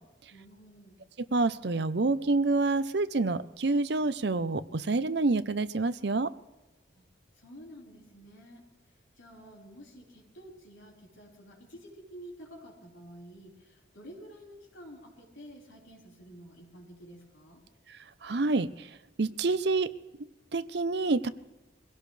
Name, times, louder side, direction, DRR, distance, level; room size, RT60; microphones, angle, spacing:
voice 1, 0.3-1.0 6.9-7.1 7.3-17.6, equal, 85° left, -3 dB, 4.6 m, -50 dB
voice 2, 1.3-6.3 18.2-18.9 19.2-19.9 20.5-21.3, right 3 dB, 60° right, 13 dB, 0.7 m, -27 dB
23.0 x 17.0 x 3.3 m, 1.1 s
head